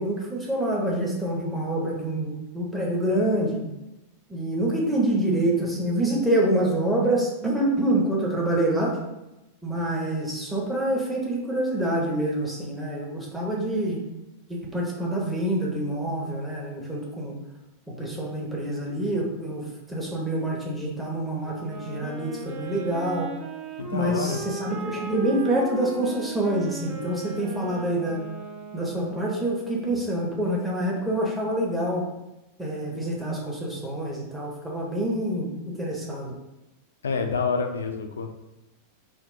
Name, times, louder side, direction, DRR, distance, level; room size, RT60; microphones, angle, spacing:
voice 1, 0.0-3.6 4.3-9.0 9.6-14.0 14.5-17.3 18.0-23.3 23.9-28.2 28.7-32.1 32.6-36.4, right 1 dB, 5° right, -3 dB, 0.8 m, -26 dB
Wind instrument woodwind instrument, 21.4-29.8, right 3 dB, 35° right, 0.4 m, -38 dB
voice 2, 23.8-24.4 37.0-38.3, left 5 dB, 70° left, 6 dB, 0.3 m, -28 dB
3.4 x 2.4 x 2.6 m, 0.97 s
figure-of-eight pair, 90°, 0 cm